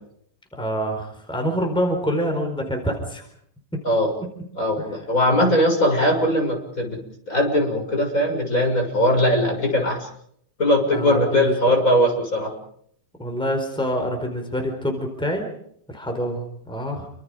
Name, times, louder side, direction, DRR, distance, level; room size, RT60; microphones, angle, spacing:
voice 1, 0.5-3.2 10.9-11.6 13.2-15.5 15.9-17.1, equal, ahead, 4 dB, 4.5 m, -26 dB
voice 2, 4.6-7.0 7.3-10.1 10.6-12.5, left 1 dB, 45° left, 2 dB, 7.2 m, -20 dB
29.0 x 26.0 x 5.2 m, 0.69 s
omnidirectional pair, 2.0 m